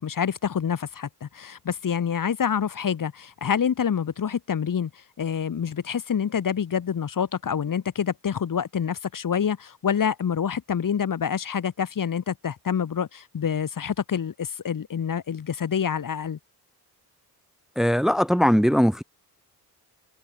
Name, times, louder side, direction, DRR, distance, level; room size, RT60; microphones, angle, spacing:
voice 1, 0.0-16.4, left 7 dB, 55° left, 2.8 m, -27 dB
voice 2, 17.8-19.0, equal, ahead, 1.5 m, -20 dB
cardioid pair, 105°, 40 cm